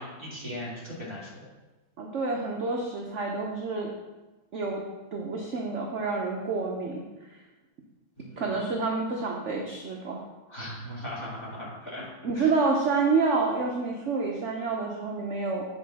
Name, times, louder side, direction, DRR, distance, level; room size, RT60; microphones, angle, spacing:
voice 1, 0.0-1.5 8.2-8.4 10.5-12.1 12.3-12.5, left 1 dB, 15° left, -8 dB, 2.0 m, -38 dB
voice 2, 2.0-3.9 4.5-4.8 5.1-7.0 8.4-10.2 12.2-15.6, right 4 dB, 60° right, 0 dB, 0.7 m, -28 dB
8.4 x 4.7 x 4.1 m, 1.1 s
omnidirectional pair, 2.1 m